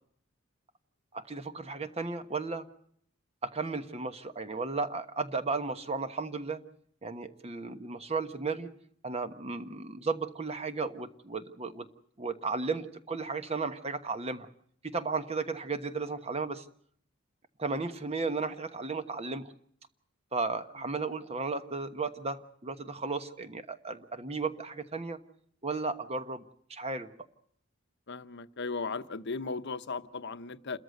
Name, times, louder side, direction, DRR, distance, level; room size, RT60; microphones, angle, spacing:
voice 1, 1.1-2.7 3.4-6.6 7.0-8.7 9.0-11.9 12.2-14.5 14.8-16.6 17.6-19.5 20.3-25.2 25.6-26.4 26.7-27.1, right 4 dB, 30° right, 10 dB, 1.2 m, -34 dB
voice 2, 28.1-30.8, left 4 dB, 55° left, 11 dB, 0.9 m, -36 dB
29.0 x 13.5 x 7.9 m, 0.67 s
head